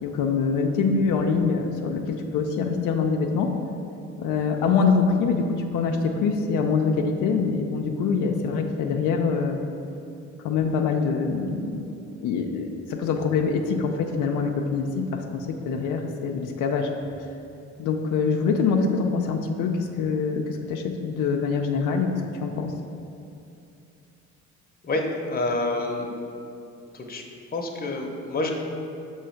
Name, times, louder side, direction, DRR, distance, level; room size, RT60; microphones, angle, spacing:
voice 1, 0.0-3.5 4.2-9.6 10.4-11.9 12.2-16.9 17.8-22.7, left 5 dB, 85° left, 3 dB, 0.5 m, -24 dB
voice 2, 24.8-26.2 26.9-27.2 27.5-28.5, left 2 dB, 30° left, 1 dB, 0.8 m, -28 dB
6.4 x 3.1 x 5.6 m, 2.7 s
cardioid pair, 90°, 30 cm